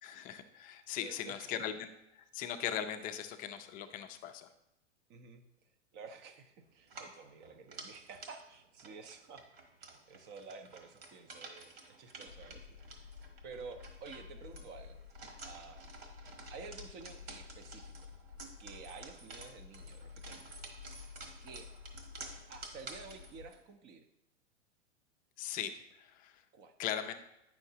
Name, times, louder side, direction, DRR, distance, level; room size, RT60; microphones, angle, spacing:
voice 1, 0.0-4.5 25.4-26.4 26.8-27.1, left 10 dB, 25° left, 7 dB, 0.4 m, -39 dB
voice 2, 1.0-1.7 5.1-9.4 9.8-13.1 13.4-15.0 15.4-15.8 16.5-18.1 18.6-20.5 21.4-21.7 22.5-24.1 26.5-26.7, right 5 dB, 30° right, 9 dB, 0.6 m, -51 dB
sound 1, 6.8-23.6, right 3 dB, 55° right, 1.5 m, -52 dB
sound 2, 12.3-23.5, left 6 dB, 80° left, 0.5 m, -52 dB
8.9 x 5.8 x 2.7 m, 0.85 s
hypercardioid pair, 105°, 37 cm